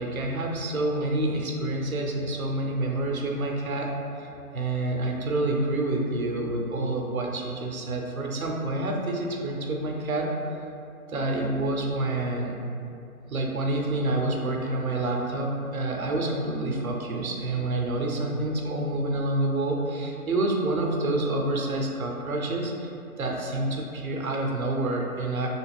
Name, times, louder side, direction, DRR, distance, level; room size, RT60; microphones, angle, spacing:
voice 1, 0.0-3.9 4.2-4.3 4.5-10.3 11.1-12.6 13.3-22.9 23.2-25.5, right 2 dB, 65° right, 0 dB, 0.6 m, -28 dB
2.6 x 2.3 x 3.4 m, 2.6 s
hypercardioid pair, 180°, 45 cm